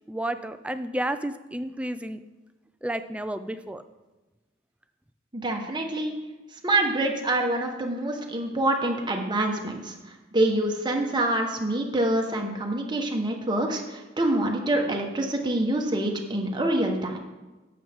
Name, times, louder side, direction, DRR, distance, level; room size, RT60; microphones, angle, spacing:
voice 1, 0.1-2.2 2.8-3.8, right 1 dB, 5° right, 10 dB, 0.3 m, -31 dB
voice 2, 5.3-6.1 6.5-17.2, right 1 dB, 20° right, 2 dB, 1.1 m, -26 dB
12.0 x 7.7 x 3.5 m, 1.1 s
head